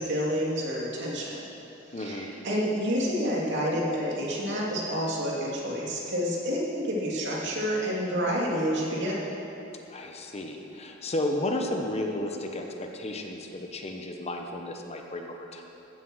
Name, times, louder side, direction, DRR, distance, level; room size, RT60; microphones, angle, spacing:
voice 1, 0.0-1.4 2.0-9.3, equal, 60° right, -4 dB, 2.7 m, -29 dB
voice 2, 1.9-2.3 9.9-15.6, left 1 dB, 30° left, 3 dB, 0.9 m, -33 dB
15.5 x 7.7 x 6.3 m, 3.0 s
head